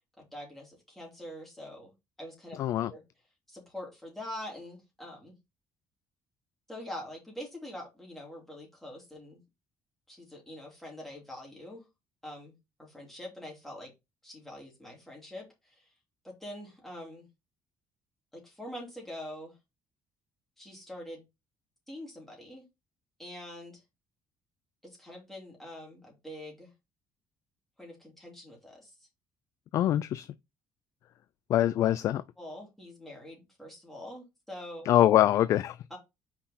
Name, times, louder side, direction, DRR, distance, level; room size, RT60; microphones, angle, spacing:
voice 1, 0.3-1.9 2.2-2.6 2.9-3.0 3.5-5.3 6.7-9.4 10.1-11.8 12.2-12.5 12.8-13.9 14.2-15.9 16.2-17.3 18.3-19.6 20.6-21.3 21.9-22.6 23.2-23.8 24.8-26.7 27.8-28.9 32.4-34.9 35.9-36.0, left 1 dB, 5° left, 2.8 m, -44 dB
voice 2, 2.5-2.9 29.7-30.3 31.5-32.2 34.9-35.8, left 12 dB, 45° left, 0.3 m, -24 dB
5.8 x 4.4 x 4.2 m
cardioid pair, 175°, 7 cm